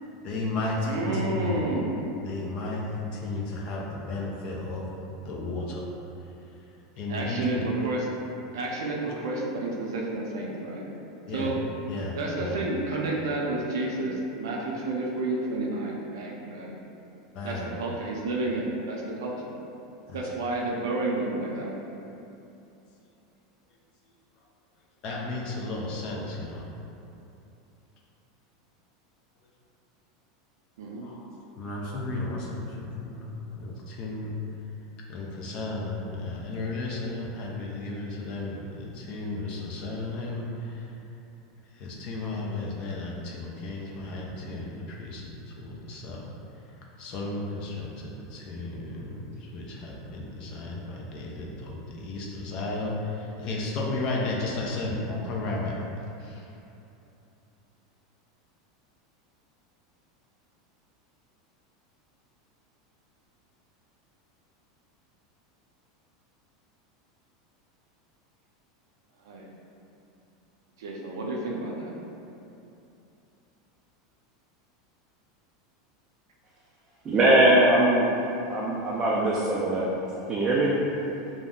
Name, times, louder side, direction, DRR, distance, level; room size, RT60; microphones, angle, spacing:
voice 1, 0.2-1.7 2.2-4.9 5.3-5.8 7.0-7.6 11.3-11.5 11.9-12.6 17.3-17.8 20.1-20.2 25.0-26.7 31.0-31.2 31.6-34.4 35.1-40.9 41.7-46.2 47.0-55.8 56.2-56.5, left 2 dB, 40° left, -2 dB, 0.5 m, -33 dB
voice 2, 0.8-2.1 7.1-8.1 8.5-10.9 11.3-11.5 12.1-16.8 17.4-19.5 20.1-21.7 30.8-31.1 69.2-69.4 70.8-71.9, right 2 dB, 90° right, -2 dB, 0.5 m, -30 dB
voice 3, 77.0-78.1 78.5-79.9 80.3-80.7, right 1 dB, 25° right, -6 dB, 0.3 m, -21 dB
2.4 x 2.1 x 3.5 m, 2.8 s
supercardioid pair, 135°, 2 cm